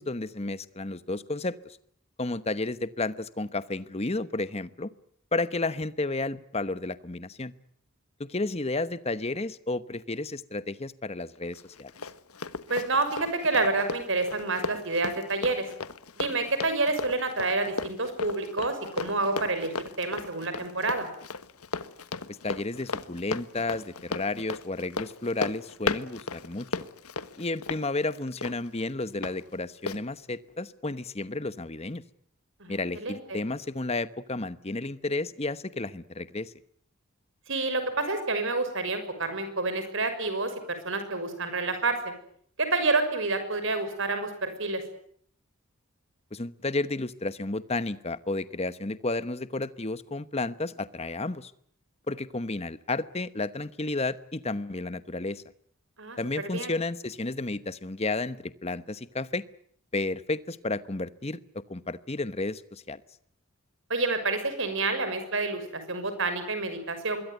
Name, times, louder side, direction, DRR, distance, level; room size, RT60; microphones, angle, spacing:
voice 1, 0.0-1.6 2.2-4.9 5.3-7.5 8.2-11.9 22.3-26.7 27.4-32.0 32.7-36.5 46.3-51.5 52.1-55.4 56.2-59.4 59.9-61.4 61.7-63.0, left 2 dB, 30° left, 14 dB, 1.0 m, -32 dB
Run, 11.5-29.3 29.9-30.0, left 4 dB, 85° left, 1.4 m, -36 dB
voice 2, 12.7-15.7 16.2-21.1 32.6-33.4 37.5-42.1 42.6-44.8 56.0-56.2 56.5-56.7 63.9-67.2, right 3 dB, 60° right, 9 dB, 6.2 m, -28 dB
25.5 x 22.0 x 9.3 m, 0.64 s
head